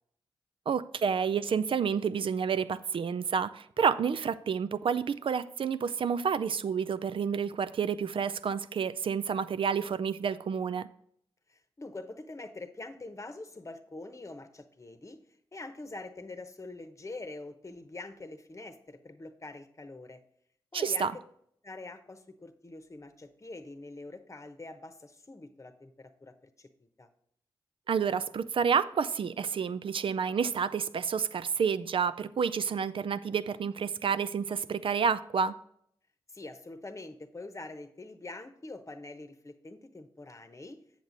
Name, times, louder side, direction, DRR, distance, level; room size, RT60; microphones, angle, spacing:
voice 1, 0.7-10.9 20.7-21.1 27.9-35.6, right 6 dB, 65° right, 0.4 m, -29 dB
voice 2, 11.5-15.2 15.5-20.2 20.7-21.2 21.6-27.1 36.3-40.8, left 2 dB, 30° left, 0.9 m, -45 dB
8.0 x 6.7 x 3.9 m
cardioid pair, 45°, 10 cm